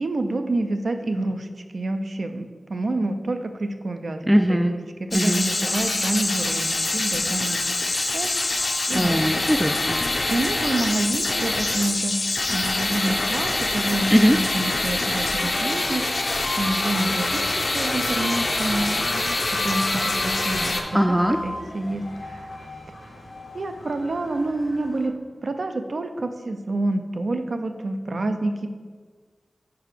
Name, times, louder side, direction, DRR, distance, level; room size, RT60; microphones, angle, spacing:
voice 1, 0.0-1.5 1.7-7.6 8.1-9.5 10.3-12.2 12.5-16.3 16.6-20.8 21.4-22.5 23.5-28.7, right 2 dB, 70° right, 7 dB, 0.5 m, -28 dB
voice 2, 4.3-4.7 5.1-5.4 8.9-10.0 14.1-14.4 20.9-21.4, equal, 5° right, 6 dB, 0.3 m, -20 dB
sound 1, 5.1-20.8, left 2 dB, 55° left, 0.6 m, -25 dB
sound 2, 5.8-25.1, left 2 dB, 90° left, 1.1 m, -38 dB
4.9 x 4.6 x 5.0 m, 1.5 s
wide cardioid pair, 60°, 0 cm